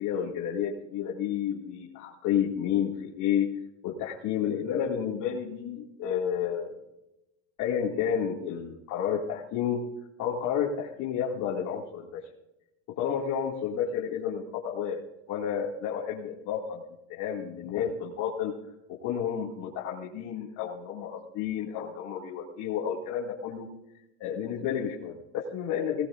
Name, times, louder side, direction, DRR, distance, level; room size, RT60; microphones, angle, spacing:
voice 1, 0.0-3.5 3.8-6.7 7.6-9.8 10.2-12.2 13.0-15.0 15.3-16.8 17.1-18.5 19.0-23.7 24.2-26.1, left 8 dB, 50° left, -4 dB, 2.5 m, -31 dB
20.0 x 18.5 x 2.6 m, 0.91 s
supercardioid pair, 140°, 38 cm